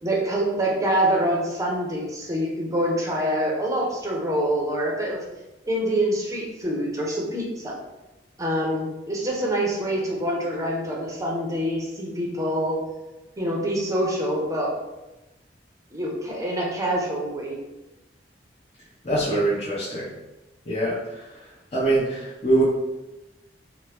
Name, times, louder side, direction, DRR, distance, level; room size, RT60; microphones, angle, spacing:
voice 1, 0.0-5.2 5.7-7.7 8.4-12.8 13.4-14.7 15.9-17.6, right 1 dB, 20° right, -2 dB, 0.6 m, -25 dB
voice 2, 19.0-20.1 20.7-22.6, right 2 dB, 35° left, -9 dB, 0.7 m, -24 dB
2.9 x 2.1 x 3.3 m, 1.0 s
head